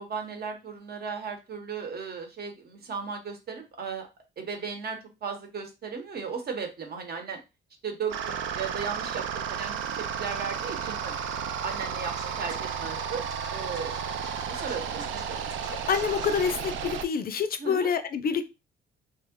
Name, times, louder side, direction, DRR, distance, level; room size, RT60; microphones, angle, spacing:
voice 1, 0.0-4.1 4.4-7.4 7.8-11.2 11.6-13.2 13.5-14.0 14.5-15.4 17.6-17.9, right 5 dB, 50° right, 4 dB, 1.0 m, -36 dB
sound 1, 8.1-17.0, right 7 dB, 75° right, 0.4 m, -33 dB
Scratching (performance technique), 12.2-16.5, right 2 dB, 20° right, 0.7 m, -45 dB
voice 2, 15.9-18.4, left 6 dB, 50° left, 10 dB, 0.4 m, -27 dB
2.8 x 2.1 x 3.5 m, 0.26 s
cardioid pair, 90°, 20 cm